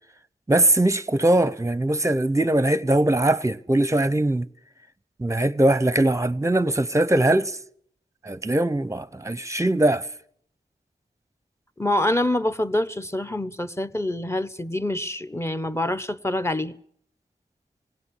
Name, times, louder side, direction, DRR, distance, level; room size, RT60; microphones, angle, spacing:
voice 1, 0.5-4.5 5.2-7.6 8.2-10.1, right 1 dB, 15° right, 0.8 m, -21 dB
voice 2, 11.8-16.7, left 1 dB, 15° left, 1.0 m, -26 dB
19.5 x 17.0 x 8.4 m
cardioid pair, 45°, 18 cm